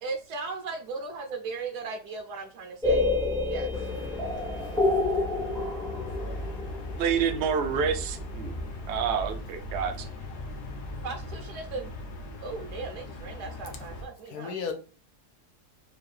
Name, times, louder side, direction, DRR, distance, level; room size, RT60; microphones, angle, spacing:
voice 1, 0.0-3.1 3.4-3.7 11.0-11.9 12.4-14.5, right 4 dB, 80° right, 4 dB, 1.2 m, -37 dB
sound 1, 2.8-8.6, left 2 dB, 5° left, 0.4 m, -29 dB
sound 2, 3.7-14.0, left 1 dB, 60° left, 1.1 m, -38 dB
voice 2, 5.7-6.4 14.3-14.7, left 6 dB, 75° left, 5 dB, 1.4 m, -37 dB
voice 3, 7.0-8.5 8.9-10.1, right 7 dB, 65° right, 7 dB, 0.7 m, -28 dB
4.5 x 2.4 x 3.1 m, 0.34 s
omnidirectional pair, 1.7 m